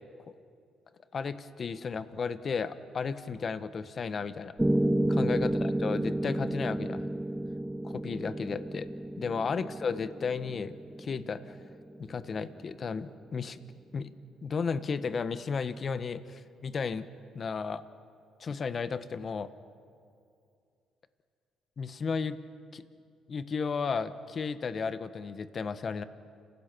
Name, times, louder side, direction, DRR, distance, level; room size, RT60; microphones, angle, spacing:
voice 1, 1.1-4.5 5.1-7.1 7.8-8.9 9.2-11.5 12.0-13.6 13.9-14.1 14.4-17.1 17.3-17.8 18.4-19.5 21.8-22.4 22.7-22.8 23.3-26.0, left 5 dB, 45° left, 12 dB, 1.1 m, -34 dB
Piano, 4.6-12.7, right 1 dB, 10° right, 0.8 m, -31 dB
30.0 x 16.0 x 6.1 m, 2.3 s
supercardioid pair, 65°, 0 cm